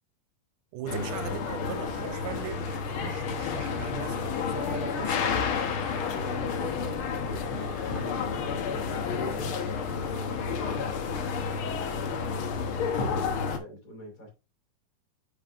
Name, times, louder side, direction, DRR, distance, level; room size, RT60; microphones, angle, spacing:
voice 1, 0.7-5.4, right 12 dB, 85° right, 2.3 m, -39 dB
sound 1, 0.9-13.6, left 5 dB, 80° left, 1.2 m, -30 dB
voice 2, 6.1-12.2 12.5-14.3, equal, 40° left, 3.1 m, -46 dB
9.1 x 5.6 x 2.5 m
omnidirectional pair, 3.7 m